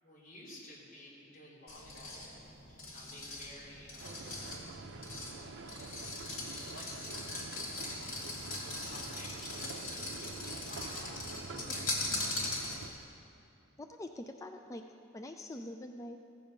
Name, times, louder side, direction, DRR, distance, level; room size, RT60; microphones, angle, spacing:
voice 1, 0.0-4.5 5.4-5.9 6.3-7.6 8.3-12.0, equal, 45° left, -6 dB, 2.9 m, -53 dB
sound 1, 1.7-13.0, left 2 dB, 90° left, 2.4 m, -41 dB
sound 2, 4.0-12.9, right 3 dB, 65° right, 0.6 m, -47 dB
voice 2, 12.1-12.5 13.8-14.8 15.1-16.2, left 1 dB, 15° left, 5 dB, 0.4 m, -45 dB
15.5 x 7.0 x 5.2 m, 2.9 s
head